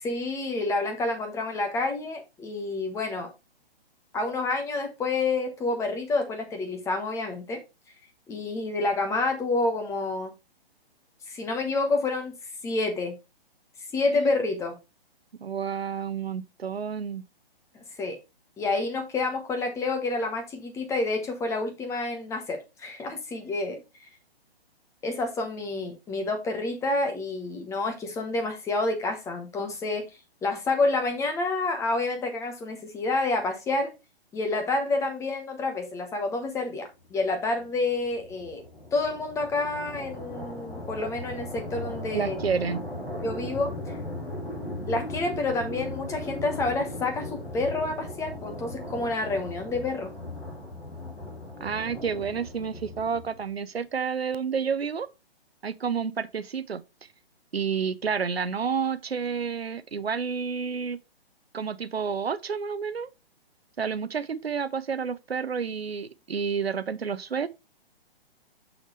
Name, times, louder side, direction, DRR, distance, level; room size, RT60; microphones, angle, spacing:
voice 1, 0.0-3.3 4.1-7.6 8.3-10.3 11.3-12.3 12.6-13.1 13.9-14.8 17.7-18.2 18.6-24.1 25.0-30.0 30.4-33.9 34.3-38.6 38.9-42.4 43.2-44.0 44.9-50.1, left 3 dB, 10° left, 1.1 m, -28 dB
voice 2, 15.4-17.2 42.1-42.8 51.6-55.1 55.6-56.8 57.5-61.0 61.5-63.1 63.8-67.5, right 6 dB, 75° right, 0.7 m, -30 dB
sound 1, 37.3-53.6, left 1 dB, 85° left, 2.5 m, -38 dB
6.5 x 6.0 x 3.1 m
figure-of-eight pair, 130°, 31 cm